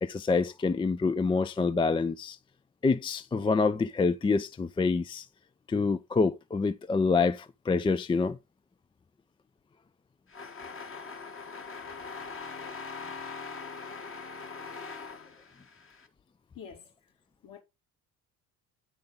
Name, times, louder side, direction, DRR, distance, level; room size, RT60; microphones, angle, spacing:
voice 1, 0.0-2.4 2.8-5.3 5.7-8.4, left 4 dB, 15° left, 0.4 m, -27 dB
sound 1, 10.3-16.1, left 4 dB, 30° left, 1.4 m, -42 dB
voice 2, 16.5-16.9 17.4-17.6, left 7 dB, 50° left, 2.5 m, -47 dB
8.6 x 5.3 x 3.7 m
hypercardioid pair, 60°, 42 cm